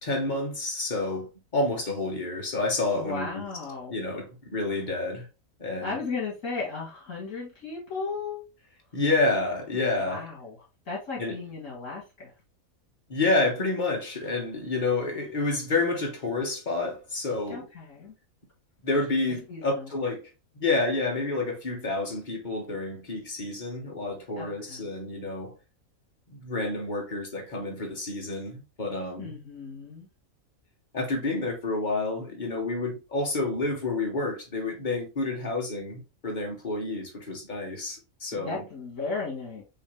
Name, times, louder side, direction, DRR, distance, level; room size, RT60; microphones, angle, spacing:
voice 1, 0.0-3.4 3.9-5.3 5.6-6.0 8.9-10.2 11.2-11.4 13.1-17.7 18.8-20.2 20.6-25.5 26.3-29.3 30.9-38.6, left 2 dB, 35° left, 1.4 m, -29 dB
voice 2, 3.0-4.0 5.8-8.4 9.9-12.3 17.5-18.1 19.5-19.9 24.4-24.9 29.2-30.1 38.3-39.6, left 4 dB, 70° left, 2.2 m, -35 dB
5.5 x 2.9 x 3.2 m
omnidirectional pair, 1.4 m